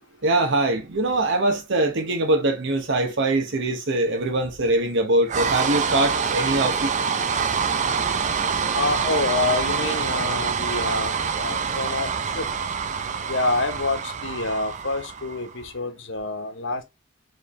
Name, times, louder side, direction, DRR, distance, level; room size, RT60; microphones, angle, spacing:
voice 1, 0.2-6.9, right 2 dB, 60° right, 1.0 m, -22 dB
sound 1, 5.3-15.6, right 6 dB, 35° right, 0.4 m, -26 dB
voice 2, 8.7-12.5 13.3-16.8, left 3 dB, 65° left, 0.9 m, -27 dB
4.6 x 3.3 x 3.1 m
head